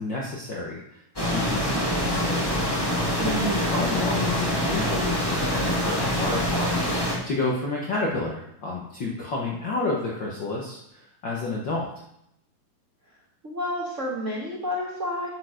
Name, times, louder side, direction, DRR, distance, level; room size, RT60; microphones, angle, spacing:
voice 1, 0.0-2.6 3.0-11.9, left 3 dB, 65° left, -3 dB, 1.1 m, -31 dB
sound 1, 1.2-7.2, equal, 10° left, 1.3 m, -25 dB
voice 2, 3.2-3.7 13.4-15.3, equal, 65° right, -3 dB, 0.7 m, -29 dB
9.1 x 6.5 x 5.0 m, 0.77 s
omnidirectional pair, 3.8 m